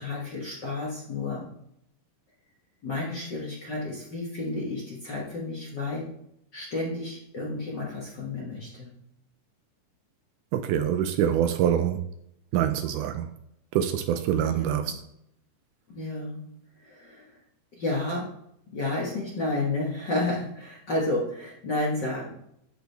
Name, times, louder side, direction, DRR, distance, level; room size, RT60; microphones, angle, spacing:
voice 1, 0.0-1.5 2.8-6.1 6.5-9.0 14.3-14.9 15.9-16.4 16.8-17.4 17.7-18.3 18.7-22.3, left 2 dB, 50° left, 1.4 m, -31 dB
voice 2, 10.5-12.1 12.5-13.3 13.7-15.0, right 10 dB, 80° right, 1.9 m, -25 dB
12.5 x 5.0 x 3.3 m
omnidirectional pair, 3.8 m